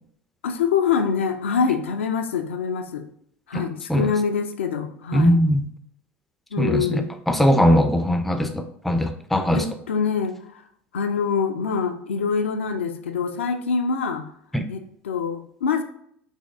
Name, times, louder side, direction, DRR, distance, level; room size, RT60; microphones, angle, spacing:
voice 1, 0.4-3.1 3.5-5.4 6.5-7.1 9.5-10.6 10.9-14.2 14.7-15.8, left 6 dB, 75° left, 6 dB, 0.4 m, -25 dB
voice 2, 5.1-5.7 6.6-9.6 14.5-14.7, left 1 dB, ahead, 7 dB, 0.3 m, -20 dB
4.1 x 2.9 x 2.4 m, 0.67 s
figure-of-eight pair, 75°, 7 cm